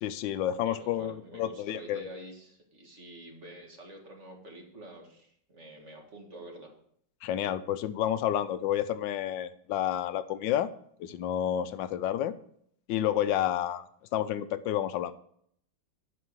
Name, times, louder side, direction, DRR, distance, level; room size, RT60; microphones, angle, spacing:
voice 1, 0.0-2.0 7.2-10.7 11.0-12.3 12.9-13.8 14.1-15.1, left 11 dB, 80° left, 13 dB, 1.3 m, -30 dB
voice 2, 0.7-6.7, right 1 dB, 40° right, 1 dB, 2.0 m, -47 dB
10.0 x 5.6 x 6.2 m, 0.67 s
omnidirectional pair, 2.1 m